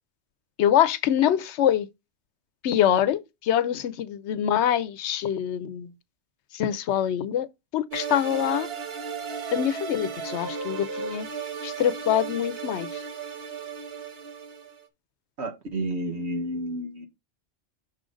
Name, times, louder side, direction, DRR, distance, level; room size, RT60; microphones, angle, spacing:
voice 1, 0.6-1.9 2.6-5.9 6.5-7.5 7.7-8.7 9.5-11.3 11.6-13.0, left 10 dB, 90° left, 0.9 m, -24 dB
sound 1, 7.9-14.8, right 5 dB, 60° right, 1.3 m, -35 dB
voice 2, 15.4-17.1, right 1 dB, 80° right, 1.5 m, -31 dB
6.2 x 3.8 x 4.9 m
omnidirectional pair, 1.1 m